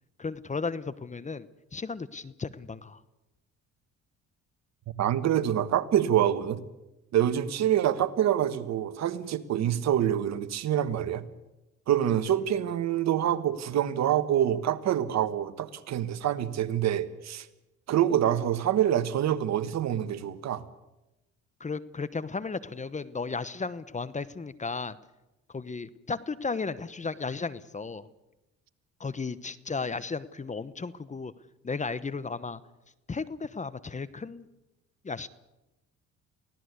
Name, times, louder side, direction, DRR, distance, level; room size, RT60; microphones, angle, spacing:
voice 1, 0.2-1.5 1.7-3.0 21.6-25.0 25.5-28.1 29.0-31.3 31.6-32.6 33.1-34.5 35.0-35.3, left 4 dB, 25° left, 15 dB, 1.1 m, -34 dB
voice 2, 5.0-6.6 7.1-11.2 11.9-17.5 17.9-20.6, right 10 dB, 65° right, 12 dB, 1.4 m, -26 dB
24.0 x 16.5 x 8.2 m, 0.99 s
supercardioid pair, 70°, 30 cm